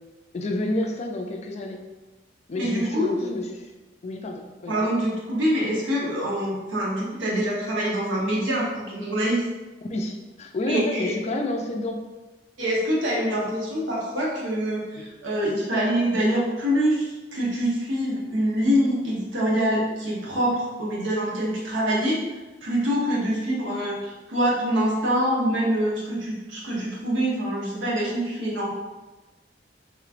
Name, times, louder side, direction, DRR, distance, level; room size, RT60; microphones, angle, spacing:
voice 1, 0.3-1.8 2.5-3.7 4.0-4.9 9.8-12.0, left 1 dB, 35° left, 3 dB, 0.4 m, -29 dB
voice 2, 2.6-3.1 4.7-9.4 10.7-11.1 12.6-22.2 22.6-28.7, equal, 75° right, -5 dB, 1.0 m, -25 dB
3.6 x 3.1 x 2.4 m, 1.2 s
head